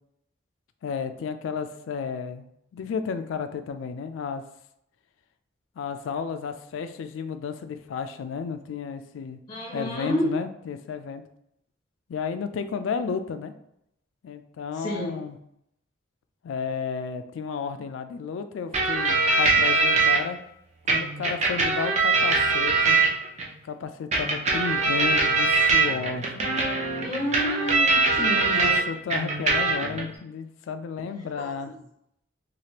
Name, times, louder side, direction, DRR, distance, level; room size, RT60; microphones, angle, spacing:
voice 1, 0.8-2.4 2.7-4.4 5.8-9.4 9.7-11.2 12.1-13.5 14.2-15.4 16.4-20.4 20.9-23.0 23.6-26.7 28.5-31.7, left 6 dB, 85° left, 9 dB, 0.3 m, -32 dB
voice 2, 9.5-10.3 14.8-15.2 27.0-28.8 31.4-31.5, equal, 25° left, -2 dB, 0.5 m, -29 dB
sound 1, 18.7-20.2 20.9-23.5 24.1-28.8 29.1-30.0, right 3 dB, 35° right, 0.5 m, -22 dB
3.2 x 2.4 x 2.8 m, 0.79 s
head